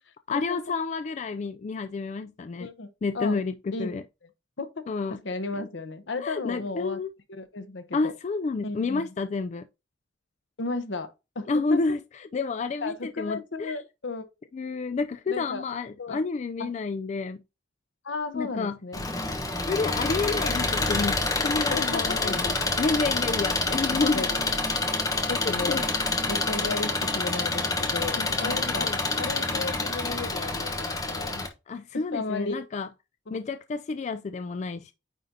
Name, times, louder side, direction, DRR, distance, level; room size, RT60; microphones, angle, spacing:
voice 1, 0.3-2.7 3.0-4.0 4.9-5.2 5.6-5.7 6.2-7.1 7.9-9.7 11.5-13.7 14.5-17.4 18.3-18.8 19.7-22.5 22.8-24.2 25.7-25.8 28.2-29.0 31.7-32.9 33.3-34.9, left 4 dB, 40° left, 0.3 m, -30 dB
voice 2, 5.1-7.0 7.3-8.1 8.6-9.1 10.6-11.8 12.8-14.2 15.3-15.6 16.0-16.2 16.6-16.7 18.0-19.1 21.7-22.5 23.9-24.4 25.3-25.9 26.3-31.4 31.9-32.6 33.3-33.4, left 3 dB, 80° left, 0.9 m, -34 dB
Engine, 18.9-31.5, left 3 dB, 20° left, 1.0 m, -27 dB
9.2 x 3.9 x 2.7 m
head